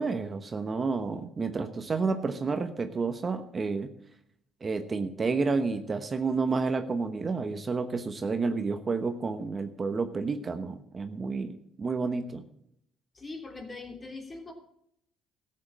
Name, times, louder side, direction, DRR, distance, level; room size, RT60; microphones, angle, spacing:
voice 1, 0.0-3.9 4.6-12.4, right 4 dB, 35° right, 8 dB, 1.0 m, -30 dB
voice 2, 13.1-14.5, left 3 dB, 30° left, 2 dB, 3.1 m, -41 dB
13.5 x 7.7 x 7.5 m, 0.74 s
supercardioid pair, 65°, 0 cm